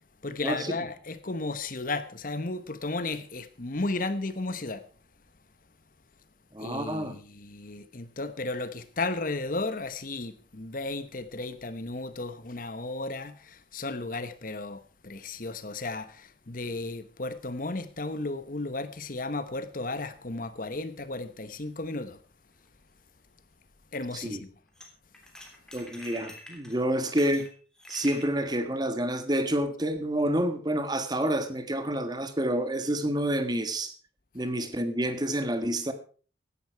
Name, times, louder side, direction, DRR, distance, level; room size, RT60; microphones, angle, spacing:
voice 1, 0.2-4.8 6.6-22.2 23.9-24.5, left 2 dB, 50° left, 1.1 m, -34 dB
voice 2, 6.5-7.2 24.1-24.4 25.7-27.5 27.9-33.9 34.3-35.9, right 1 dB, 20° right, 1.5 m, -28 dB
sound 1, 22.6-22.7 24.8-24.9 25.1-28.3, left 1 dB, 5° left, 3.2 m, -46 dB
16.0 x 11.5 x 4.6 m
head